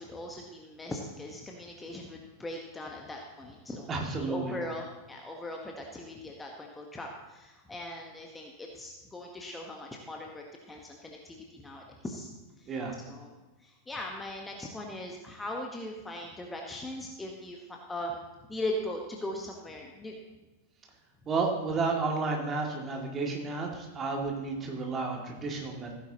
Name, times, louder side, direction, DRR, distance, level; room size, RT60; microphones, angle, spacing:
voice 1, 0.0-3.9 4.2-12.3 12.6-12.7 13.1-13.3 13.6-20.2, left 1 dB, 10° left, 1 dB, 1.2 m, -39 dB
voice 2, 3.9-4.5 12.7-13.0 21.3-25.9, right 4 dB, 25° right, 1 dB, 2.1 m, -31 dB
15.5 x 9.5 x 2.9 m, 1.1 s
figure-of-eight pair, 90°, 0 cm